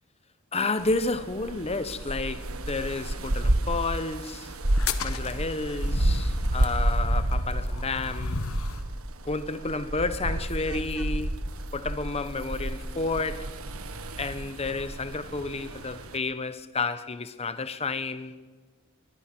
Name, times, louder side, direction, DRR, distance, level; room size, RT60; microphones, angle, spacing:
voice 1, 0.5-4.5 5.0-8.4 9.2-11.4 11.7-13.6 14.2-18.4, left 3 dB, 30° left, 1.0 m, -31 dB
sound 1, 0.8-16.2, right 1 dB, 80° right, 1.5 m, -30 dB
sound 2, 4.7-8.9, left 4 dB, 80° left, 1.4 m, -36 dB
22.5 x 22.5 x 6.1 m
head